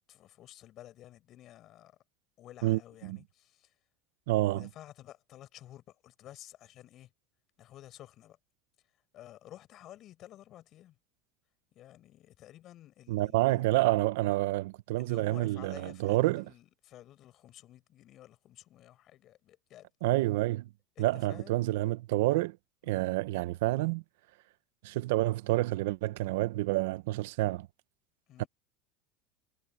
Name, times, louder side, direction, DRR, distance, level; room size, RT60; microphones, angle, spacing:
voice 1, 0.1-2.0 2.4-3.7 4.5-7.1 7.6-8.4 9.1-11.0 11.7-13.8 15.0-19.9 21.0-22.0 22.8-23.1 28.3-28.5, left 13 dB, 45° left, 7.4 m, -52 dB
voice 2, 2.6-3.2 4.3-4.7 13.1-16.4 20.0-20.7 21.0-22.6 22.8-24.0 24.8-27.7 28.4-28.5, right 18 dB, 80° right, 0.8 m, -28 dB
supercardioid pair, 130°, 0 cm